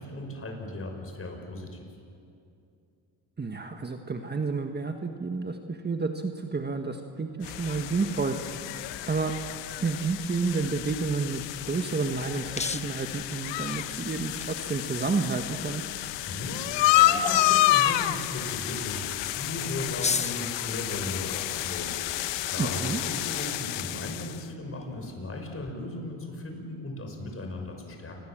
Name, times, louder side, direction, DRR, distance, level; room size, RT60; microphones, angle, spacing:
voice 1, 0.0-1.8 16.2-28.2, left 2 dB, 30° left, 3 dB, 6.0 m, -37 dB
voice 2, 3.4-8.4 9.1-9.3 9.8-11.4 11.7-15.8 22.6-23.0, right 4 dB, 25° right, 5 dB, 1.5 m, -30 dB
sound 1, 7.4-24.4, left 14 dB, 90° left, 1.0 m, -29 dB
sound 2, 11.2-25.7, left 5 dB, 15° left, 0.5 m, -41 dB
28.0 x 21.5 x 7.7 m, 2.5 s
cardioid pair, 100°, 42 cm